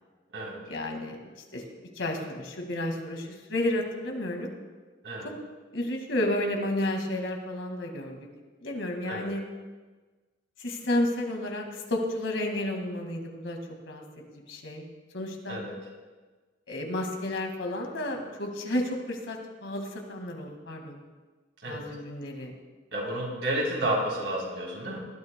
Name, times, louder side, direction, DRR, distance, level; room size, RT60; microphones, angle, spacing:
voice 1, 0.7-1.2 1.5-1.6 2.0-4.5 5.2-5.3 5.7-8.2 8.6-9.4 10.6-13.6 13.9-14.0 14.3-14.8 15.1-15.6 16.7-21.0 21.7-22.5, left 1 dB, 85° left, 2 dB, 1.9 m, -31 dB
voice 2, 22.9-25.0, right 1 dB, 80° right, -3 dB, 3.5 m, -31 dB
18.5 x 12.5 x 2.2 m, 1.3 s
head